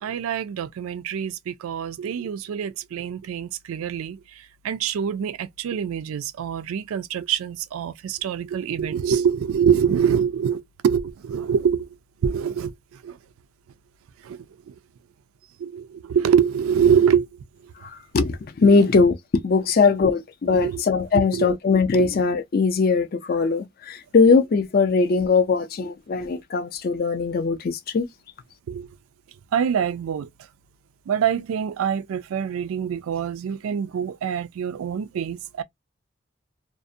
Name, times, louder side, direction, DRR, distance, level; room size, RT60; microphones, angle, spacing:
voice 1, 0.0-11.9 12.2-12.7 13.0-13.2 14.2-14.7 15.6-17.3 18.6-18.8 20.5-20.8 21.2-21.6 28.7-28.9 29.5-30.3 31.1-35.6, right 8 dB, 90° right, 0.3 m, -25 dB
voice 2, 18.1-19.1 19.4-28.1, left 4 dB, 45° left, 0.4 m, -20 dB
2.5 x 2.0 x 2.5 m
head